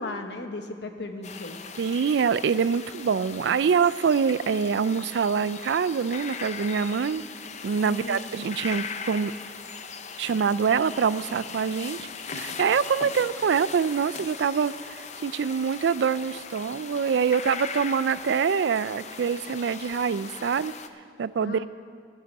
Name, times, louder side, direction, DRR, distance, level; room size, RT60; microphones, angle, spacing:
voice 1, 0.0-1.6 7.8-8.2 21.4-21.7, left 2 dB, 65° left, 6 dB, 1.1 m, -36 dB
sound 1, 1.2-20.9, left 6 dB, 40° left, 0.6 m, -39 dB
voice 2, 1.8-7.2 7.6-9.3 10.2-12.0 12.3-20.7 21.2-21.7, right 6 dB, 65° right, 16 dB, 0.3 m, -25 dB
13.0 x 8.3 x 8.5 m, 2.2 s
head